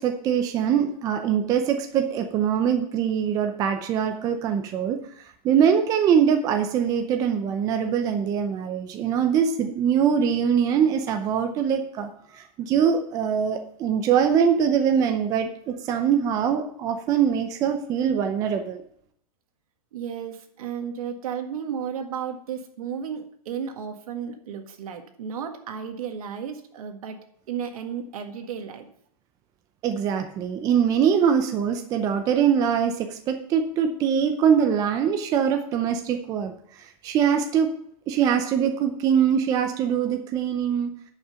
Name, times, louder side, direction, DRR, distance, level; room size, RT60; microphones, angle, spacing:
voice 1, 0.0-5.0 5.4-18.8 29.8-36.5 36.8-37.7 38.1-40.9, right 8 dB, 20° right, 6 dB, 0.6 m, -23 dB
voice 2, 19.9-27.2 27.5-28.8, right 7 dB, 70° right, 6 dB, 1.7 m, -33 dB
10.5 x 5.8 x 5.6 m, 0.65 s
supercardioid pair, 165°, 19 cm